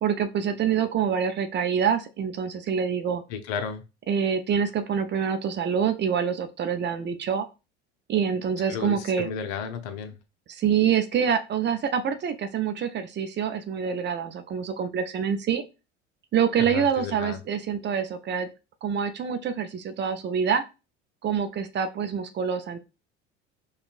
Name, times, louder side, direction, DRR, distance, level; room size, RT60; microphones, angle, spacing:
voice 1, 0.0-3.2 4.1-7.5 8.1-9.3 10.5-15.6 16.3-18.5 18.8-20.6 21.2-22.8, right 7 dB, 30° right, 9 dB, 0.5 m, -26 dB
voice 2, 3.3-3.8 8.7-10.2 16.6-17.4, left 7 dB, 55° left, 8 dB, 0.7 m, -33 dB
5.2 x 2.3 x 2.5 m, 0.29 s
hypercardioid pair, 70°, 34 cm